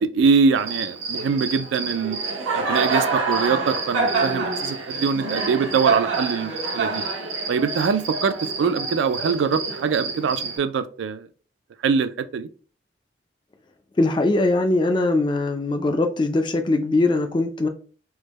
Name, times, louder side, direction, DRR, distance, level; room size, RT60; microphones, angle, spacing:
voice 1, 0.0-2.2 2.6-7.0 7.5-11.3 11.8-12.5, right 5 dB, 70° right, 0.3 m, -23 dB
Cricket, 0.6-10.6, right 3 dB, 90° right, 0.9 m, -27 dB
voice 2, 14.0-17.7, left 2 dB, 25° left, 0.3 m, -21 dB
3.4 x 2.1 x 3.0 m
head